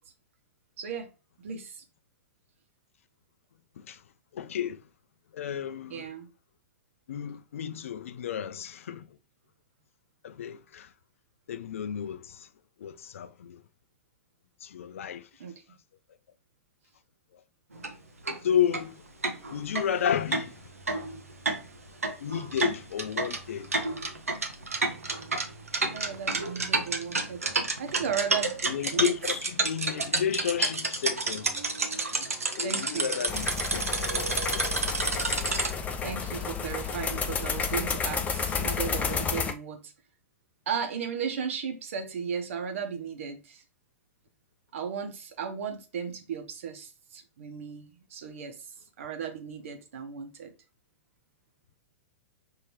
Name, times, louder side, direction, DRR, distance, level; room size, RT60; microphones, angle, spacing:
voice 1, 0.8-1.1 1.4-1.8 5.9-6.3 15.4-15.6 25.8-28.5 28.9-29.1 32.6-33.1 36.0-39.9 40.7-43.6 44.7-48.7 49.0-50.5, right 7 dB, 65° right, 1.1 m, -35 dB
voice 2, 4.3-4.8 5.3-6.1 7.1-9.1 10.2-10.9 11.5-12.5 12.8-13.6 14.6-15.3 18.4-19.0 19.5-20.6 22.2-23.8 28.6-31.6 32.1-34.7, left 9 dB, 65° left, 0.5 m, -32 dB
sound 1, 17.7-17.9 18.3-18.4 18.7-18.8 19.2-35.7, right 3 dB, 90° right, 0.9 m, -30 dB
sound 2, 33.3-39.5, left 6 dB, 20° left, 0.5 m, -31 dB
5.6 x 2.9 x 3.0 m
figure-of-eight pair, 110°, 8 cm